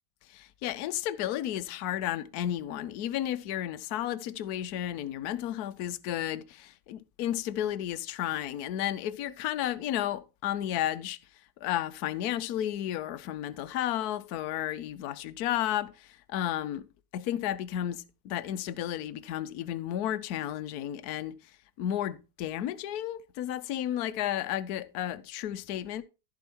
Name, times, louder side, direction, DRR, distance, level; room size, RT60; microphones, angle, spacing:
voice 1, 0.3-11.2 11.6-16.9 17.1-21.4 21.8-26.0, left 11 dB, 65° left, 1.1 m, -33 dB
14.5 x 5.3 x 4.4 m
omnidirectional pair, 1.9 m